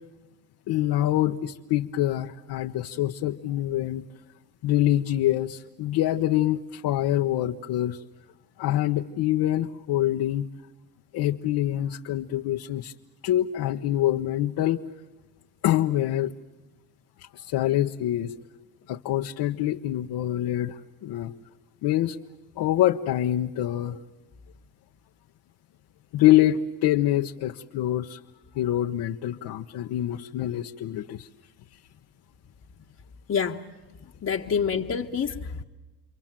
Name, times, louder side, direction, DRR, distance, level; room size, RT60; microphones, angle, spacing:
voice 1, 0.7-4.0 4.6-8.0 8.6-10.5 11.1-12.9 13.2-14.8 15.6-16.3 17.2-18.4 18.9-21.3 21.8-22.2 22.6-24.0 26.1-28.2 28.5-31.3, left 13 dB, 70° left, 3 dB, 1.1 m, -25 dB
voice 2, 33.3-33.6 34.2-35.6, left 6 dB, 40° left, -1 dB, 1.3 m, -27 dB
29.5 x 23.5 x 7.5 m, 1.2 s
cardioid pair, 90°, 39 cm